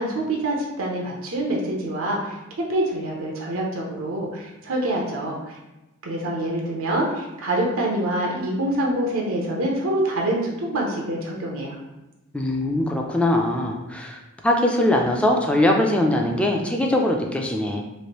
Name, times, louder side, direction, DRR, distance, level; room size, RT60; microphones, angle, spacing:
voice 1, 0.0-5.6 6.0-11.8, right 1 dB, 85° right, -1 dB, 0.6 m, -26 dB
voice 2, 12.3-17.8, left 1 dB, 5° left, 1 dB, 0.3 m, -21 dB
3.1 x 2.5 x 2.9 m, 1.0 s
head